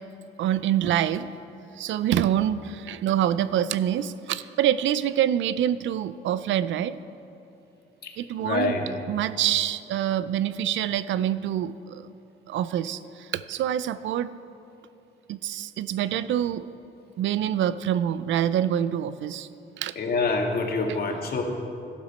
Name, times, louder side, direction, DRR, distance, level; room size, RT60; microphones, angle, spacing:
voice 1, 0.4-1.3 1.8-7.0 8.2-8.8 9.1-12.1 12.5-14.3 15.3-16.7 17.2-19.5 19.8-19.9, right 10 dB, 75° right, 15 dB, 0.5 m, -26 dB
voice 2, 8.0-9.0 20.0-21.4, left 3 dB, 50° left, 2 dB, 1.8 m, -27 dB
12.5 x 11.5 x 4.3 m, 2.7 s
cardioid pair, 90°, 20 cm